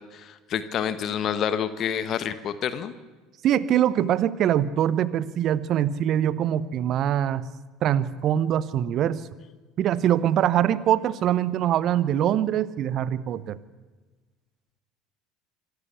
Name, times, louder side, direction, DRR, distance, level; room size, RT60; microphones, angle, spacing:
voice 1, 0.1-2.9, left 8 dB, 45° left, 13 dB, 1.3 m, -28 dB
voice 2, 3.4-7.5 7.8-9.3 9.8-13.6, right 10 dB, 50° right, 17 dB, 0.9 m, -23 dB
25.5 x 13.0 x 8.3 m, 1.2 s
hypercardioid pair, 65°, 0 cm